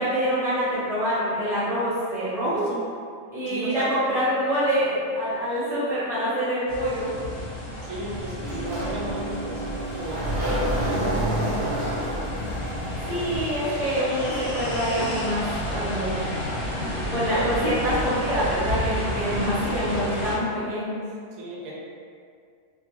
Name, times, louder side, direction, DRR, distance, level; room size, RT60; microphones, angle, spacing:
voice 1, 0.0-2.6 3.3-7.1 13.1-15.4 15.7-16.2 17.1-21.0, equal, ahead, -12 dB, 0.6 m, -25 dB
voice 2, 2.5-2.9 3.5-3.9 7.8-10.4 10.8-12.5 16.1-16.5 16.8-17.0 17.3-17.5 21.4-21.7, right 1 dB, 70° right, -4 dB, 0.9 m, -35 dB
sound 1, 6.7-20.3, left 1 dB, 40° left, 0.7 m, -31 dB
Sliding door, 8.4-13.4, right 1 dB, 50° right, 0.6 m, -29 dB
2.6 x 2.3 x 2.9 m, 2.3 s
omnidirectional pair, 1.7 m